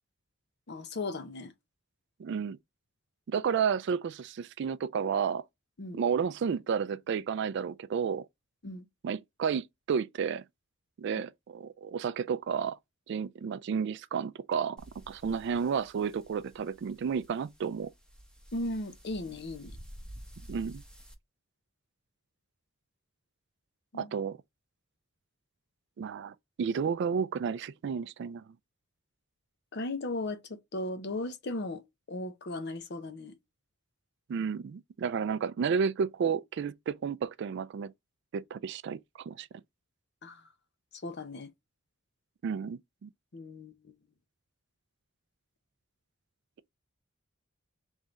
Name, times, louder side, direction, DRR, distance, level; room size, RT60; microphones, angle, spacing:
voice 1, 0.7-1.5 5.8-6.0 8.6-8.9 18.5-19.7 23.9-24.1 29.7-31.8 32.1-33.4 40.2-40.4 41.0-41.5 43.3-43.9, left 2 dB, 55° left, 0.7 m, -37 dB
voice 2, 2.2-2.6 3.3-5.4 5.9-8.3 9.0-10.4 11.0-12.8 13.1-17.9 20.5-20.8 24.0-24.4 26.0-28.4 34.3-37.9 38.3-39.5 42.4-43.1, right 6 dB, 55° right, 0.3 m, -32 dB
sound 1, 14.8-21.1, equal, 5° left, 0.8 m, -51 dB
3.6 x 3.2 x 3.9 m
head